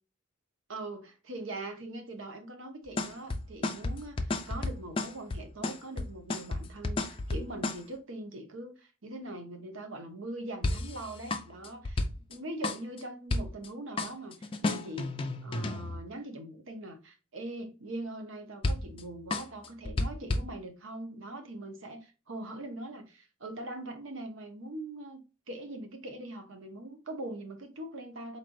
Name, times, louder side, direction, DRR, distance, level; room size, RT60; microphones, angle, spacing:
voice 1, 0.7-12.0 12.3-15.1 15.4-28.4, right 1 dB, 70° right, 1.0 m, -42 dB
sound 1, 2.9-7.8 10.6-12.3 12.6-13.0 13.3-13.7 14.0-16.0 18.6-19.1 19.3-20.4, left 2 dB, 25° left, 0.4 m, -32 dB
4.1 x 3.2 x 2.5 m
head